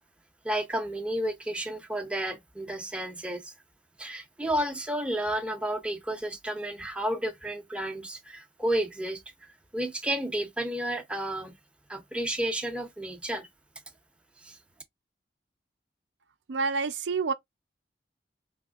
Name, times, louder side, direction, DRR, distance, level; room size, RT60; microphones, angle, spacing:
voice 1, 0.4-3.5 4.0-9.2 9.7-11.5 11.9-13.5 14.4-14.6, right 1 dB, 5° right, 0.5 m, -31 dB
voice 2, 16.5-17.3, right 4 dB, 80° right, 0.5 m, -28 dB
3.4 x 2.8 x 2.3 m
head